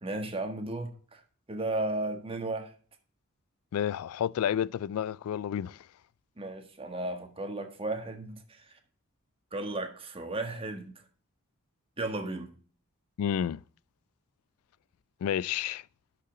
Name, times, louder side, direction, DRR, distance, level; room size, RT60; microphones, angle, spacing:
voice 1, 0.0-1.2 1.5-2.7 6.4-8.6 9.5-10.9 12.0-12.5, right 2 dB, 25° right, 1.5 m, -34 dB
voice 2, 3.7-5.8 13.2-13.6 15.2-15.8, left 9 dB, 75° left, 0.3 m, -30 dB
11.5 x 5.6 x 3.8 m
head